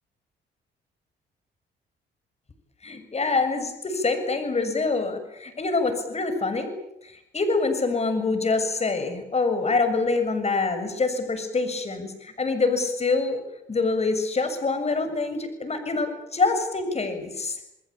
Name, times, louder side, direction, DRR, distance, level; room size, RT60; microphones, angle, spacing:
voice 1, 2.8-6.7 7.0-13.4 13.7-17.6, left 3 dB, 30° left, 8 dB, 7.1 m, -25 dB
28.5 x 21.0 x 8.8 m, 0.84 s
cardioid pair, 90°, 20 cm